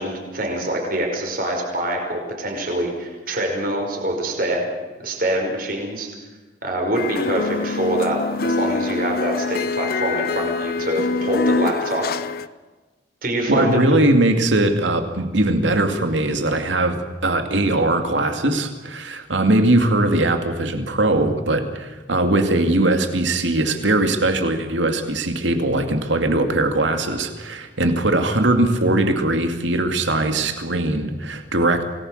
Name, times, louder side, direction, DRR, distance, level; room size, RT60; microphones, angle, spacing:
voice 1, 0.0-4.7 5.0-6.1 6.6-12.3 13.2-13.8, right 1 dB, 50° right, 2 dB, 5.5 m, -25 dB
sound 1, 6.9-12.5, left 3 dB, 55° left, 0.8 m, -24 dB
voice 2, 13.5-31.8, right 2 dB, 85° right, 6 dB, 2.4 m, -20 dB
28.0 x 19.5 x 6.6 m, 1.2 s
head